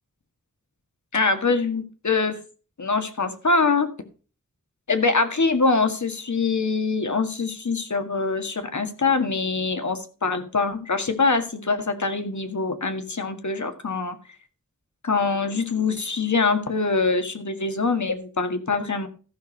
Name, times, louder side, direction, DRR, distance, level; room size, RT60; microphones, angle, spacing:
voice 1, 1.1-2.4 2.8-3.9 4.9-14.2 15.0-19.1, left 4 dB, 65° left, 7 dB, 1.9 m, -24 dB
14.5 x 6.3 x 5.4 m, 0.37 s
wide cardioid pair, 75°, 31 cm